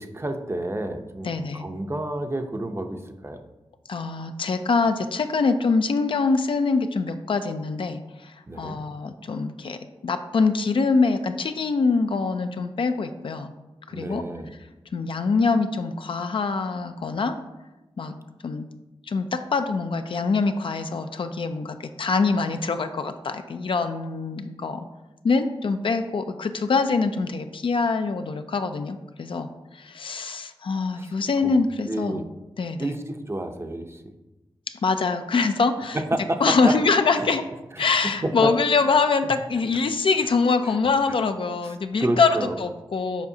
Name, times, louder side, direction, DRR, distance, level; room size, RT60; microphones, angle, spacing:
voice 1, 0.0-3.4 8.5-8.8 13.9-14.5 30.9-31.1 31.4-31.5 31.9-32.2 32.8-34.0 35.9-36.8 37.2-37.3 37.7-37.8 38.2-38.5 40.6-40.8 41.1-41.2 42.0-42.6, right 1 dB, 25° right, 6 dB, 0.6 m, -29 dB
voice 2, 1.2-1.6 3.9-13.5 13.9-14.2 14.9-17.4 18.0-18.2 18.4-18.7 19.1-24.8 25.2-29.5 29.7-32.2 32.6-32.9 34.8-36.0 36.4-37.4 37.8-43.3, left 4 dB, 60° left, 8 dB, 0.4 m, -24 dB
7.1 x 5.1 x 2.8 m, 1.0 s
cardioid pair, 60°, 10 cm